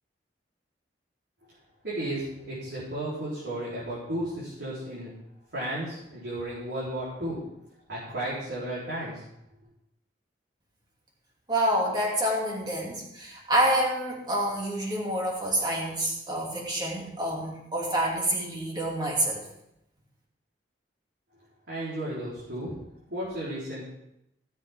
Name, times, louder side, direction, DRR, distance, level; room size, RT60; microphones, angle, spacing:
voice 1, 1.8-5.1 5.5-7.4 7.9-9.2 21.7-22.7 23.1-23.8, right 1 dB, 75° right, -9 dB, 4.1 m, -33 dB
voice 2, 11.5-19.4, right 1 dB, 25° right, -2 dB, 2.7 m, -27 dB
17.0 x 7.6 x 3.7 m, 0.82 s
head